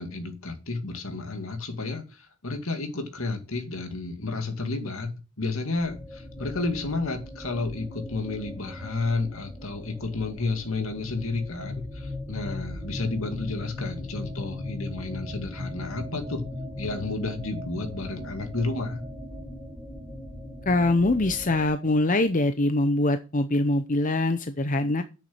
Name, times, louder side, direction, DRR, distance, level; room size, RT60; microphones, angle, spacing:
voice 1, 0.0-16.4 16.8-19.0, left 3 dB, 70° left, 2.3 m, -31 dB
sound 1, 5.8-21.7, left 1 dB, ahead, 3.0 m, -38 dB
voice 2, 20.7-25.0, left 2 dB, 35° left, 0.7 m, -23 dB
8.3 x 7.1 x 7.9 m
head